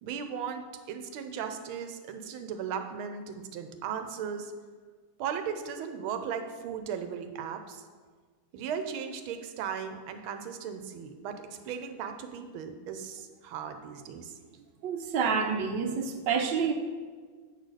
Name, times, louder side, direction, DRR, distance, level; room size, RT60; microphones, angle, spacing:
voice 1, 0.0-4.5 5.2-7.9 8.5-14.4, right 7 dB, 90° right, 7 dB, 1.5 m, -37 dB
voice 2, 14.8-16.7, right 6 dB, 70° right, 5 dB, 1.2 m, -28 dB
8.5 x 4.1 x 6.5 m, 1.5 s
omnidirectional pair, 2.2 m